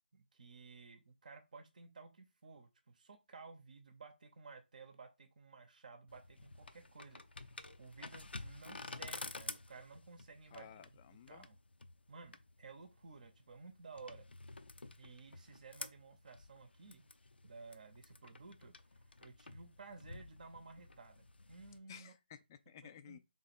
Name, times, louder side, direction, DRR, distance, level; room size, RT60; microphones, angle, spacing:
voice 1, 0.1-10.9 11.3-11.6 12.1-14.2 15.0-17.1 17.4-18.7 19.2-22.1 22.8-23.2, right 4 dB, 45° right, 0.8 m, -55 dB
sound 1, 6.1-21.8, left 3 dB, 70° left, 0.6 m, -51 dB
voice 2, 10.5-11.5 21.9-23.2, left 9 dB, 20° left, 0.4 m, -55 dB
3.7 x 3.1 x 4.2 m
figure-of-eight pair, 155°, 6 cm